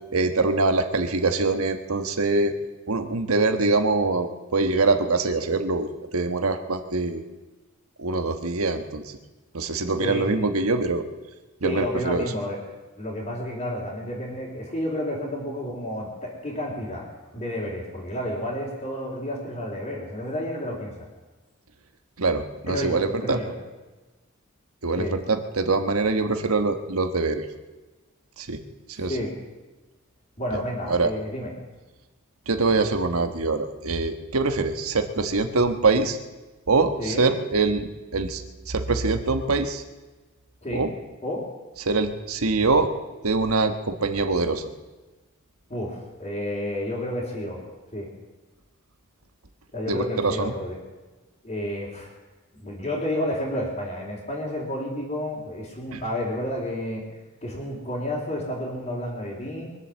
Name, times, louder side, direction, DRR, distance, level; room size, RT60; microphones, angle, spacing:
voice 1, 0.1-2.5 2.9-7.2 8.0-9.2 9.5-11.1 11.6-12.2 22.2-23.4 24.8-27.5 28.4-28.6 28.9-29.2 30.9-31.1 32.5-36.2 36.7-39.8 40.7-40.9 41.8-42.9 43.2-44.7 49.9-50.5 55.9-56.0, right 3 dB, 85° right, 7 dB, 1.3 m, -24 dB
voice 2, 10.0-10.5 11.6-12.6 13.0-17.0 17.3-21.1 22.7-23.5 24.9-25.2 29.0-29.3 30.4-31.5 37.0-37.3 40.6-40.9 41.2-41.4 45.7-48.1 49.7-50.8 51.4-52.1 52.6-57.0 57.4-59.7, left 1 dB, 30° left, -8 dB, 3.6 m, -31 dB
23.0 x 7.9 x 7.4 m, 1.2 s
head